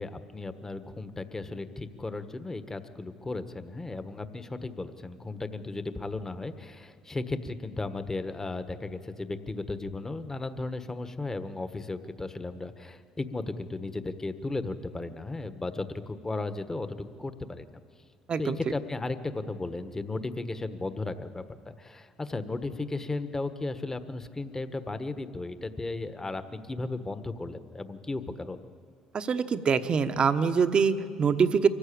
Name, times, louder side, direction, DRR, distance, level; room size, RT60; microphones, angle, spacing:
voice 1, 0.0-17.8 18.4-28.7, left 2 dB, 20° left, 10 dB, 1.4 m, -35 dB
voice 2, 29.1-31.7, right 6 dB, 45° right, 10 dB, 1.1 m, -24 dB
24.0 x 15.0 x 8.7 m, 2.3 s
supercardioid pair, 70°, 2 cm